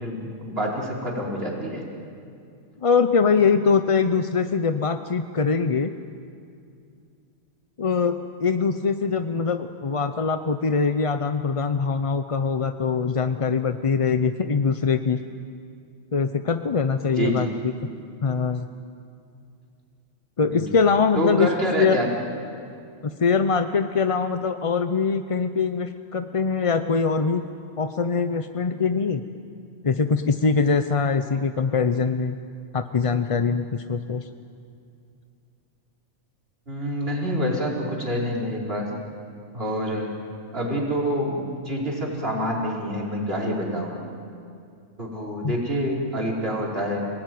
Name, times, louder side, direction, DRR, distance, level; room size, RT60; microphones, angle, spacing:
voice 1, 0.0-1.8 17.2-17.5 20.5-20.7 21.1-22.1 36.7-38.9 39.5-40.1 40.5-43.9 45.0-47.1, equal, 45° right, -3 dB, 4.9 m, -27 dB
voice 2, 2.8-5.9 7.8-15.2 16.1-17.5 18.2-18.7 20.4-21.5 21.7-21.9 23.0-27.4 27.8-29.2 29.8-32.4 32.7-34.3 45.4-45.5, left 5 dB, 35° left, 8 dB, 0.5 m, -23 dB
29.5 x 19.0 x 9.4 m, 2.4 s
omnidirectional pair, 1.4 m